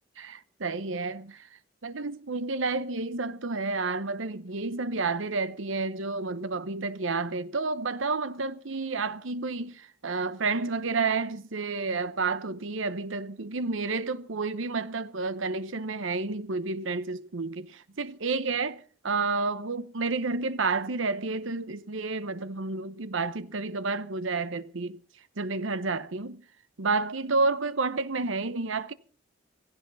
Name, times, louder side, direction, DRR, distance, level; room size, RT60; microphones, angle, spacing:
voice 1, 0.2-1.5 1.8-25.0 25.4-26.4 26.8-28.9, right 3 dB, 85° right, 0.9 m, -30 dB
16.5 x 16.0 x 4.1 m
head